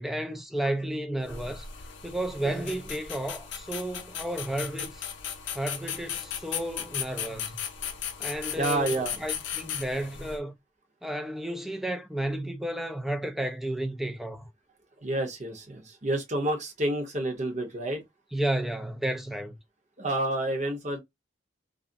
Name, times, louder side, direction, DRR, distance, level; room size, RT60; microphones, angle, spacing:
voice 1, 0.0-1.7 2.0-5.1 5.5-7.6 8.2-10.5 11.0-14.5 18.3-19.5, right 1 dB, ahead, 0.3 m, -32 dB
sound 1, 1.2-10.4, left 8 dB, 65° left, 0.5 m, -37 dB
voice 2, 8.6-9.2 15.0-18.0 20.0-21.0, right 1 dB, 35° right, 0.8 m, -29 dB
2.4 x 2.0 x 2.5 m
head